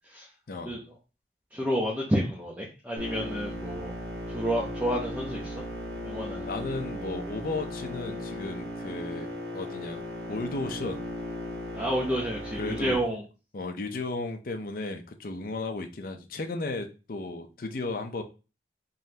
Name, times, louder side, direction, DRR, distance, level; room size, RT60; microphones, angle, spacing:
voice 1, 0.5-0.8 6.5-11.1 12.6-13.1 13.5-18.2, left 3 dB, 50° left, 5 dB, 0.5 m, -35 dB
voice 2, 1.5-3.9 4.3-5.5 6.0-6.5 11.7-13.2, equal, 10° right, -3 dB, 0.7 m, -30 dB
sound 1, 3.0-13.0, left 1 dB, 80° right, 1.2 m, -37 dB
3.9 x 3.1 x 2.8 m, 0.32 s
head